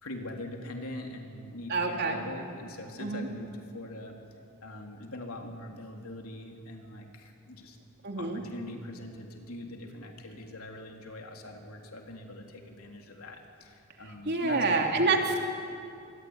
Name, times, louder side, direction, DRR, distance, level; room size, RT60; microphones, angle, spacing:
voice 1, 0.0-4.2 4.6-7.8 8.2-15.2, left 1 dB, 75° left, 2 dB, 3.5 m, -42 dB
voice 2, 1.7-2.2 3.0-3.3 8.0-8.4 14.2-15.4, right 3 dB, 50° right, 2 dB, 3.1 m, -27 dB
26.0 x 22.0 x 9.8 m, 2.5 s
head